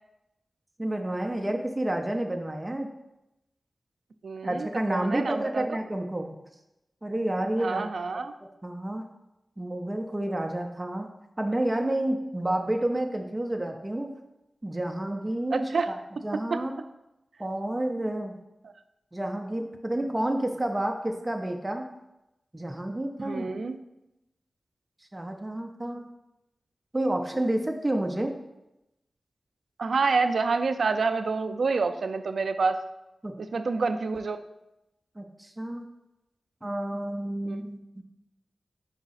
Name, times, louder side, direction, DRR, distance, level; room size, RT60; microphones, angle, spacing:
voice 1, 0.8-2.9 4.4-6.3 7.0-7.8 8.1-8.2 8.6-9.0 9.6-11.1 11.4-14.1 14.6-16.0 16.2-16.7 17.4-18.4 19.1-21.9 22.5-23.5 25.1-26.1 26.9-28.3 33.2-33.3 35.2-35.8 36.6-38.0, right 1 dB, 15° right, 3 dB, 0.5 m, -30 dB
voice 2, 4.2-5.8 7.6-8.3 15.5-15.9 16.5-16.6 23.2-23.8 29.8-32.8 33.4-34.4 37.4-37.6, right 4 dB, 80° right, 9 dB, 0.3 m, -28 dB
4.8 x 4.7 x 4.1 m, 0.93 s
wide cardioid pair, 120°, 0 cm